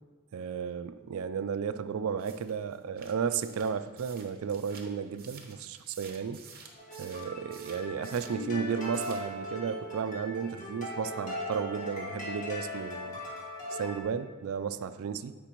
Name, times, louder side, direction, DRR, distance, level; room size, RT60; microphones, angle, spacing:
voice 1, 0.3-6.4 7.0-13.2 13.7-15.3, right 6 dB, 65° right, 12 dB, 0.3 m, -33 dB
sound 1, 2.2-8.4 8.7-9.3, right 6 dB, 40° right, 0.8 m, -51 dB
sound 2, 6.7-14.0, left 1 dB, 35° left, 1.5 m, -39 dB
10.0 x 5.2 x 3.0 m, 1.3 s
head